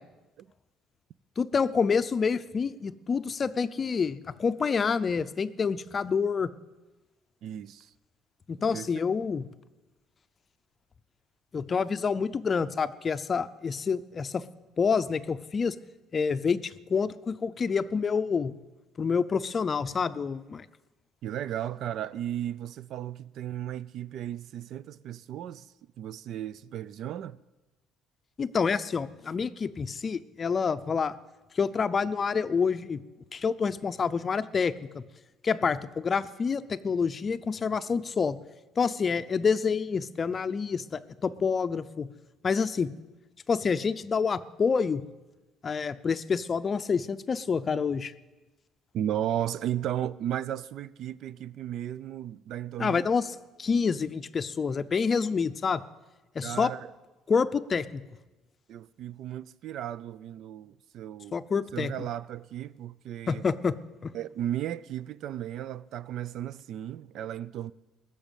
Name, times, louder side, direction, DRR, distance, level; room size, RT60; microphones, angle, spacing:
voice 1, 1.4-6.5 8.5-9.4 11.5-14.4 14.8-15.8 16.1-18.5 19.0-20.7 28.4-31.1 31.5-33.0 33.3-35.0 35.4-38.4 38.8-42.1 42.4-42.9 43.5-45.0 45.6-48.1 52.8-55.8 56.3-56.7 57.3-58.0 61.3-61.9 63.3-63.7 64.0-64.1, left 5 dB, 30° left, 0.5 m, -27 dB
voice 2, 7.4-7.9 8.7-8.9 21.2-27.4 48.9-53.1 56.4-56.9 58.7-61.4 61.7-63.4 64.1-67.7, right 11 dB, 60° right, 0.4 m, -35 dB
20.5 x 7.1 x 9.0 m
cardioid pair, 145°, 0 cm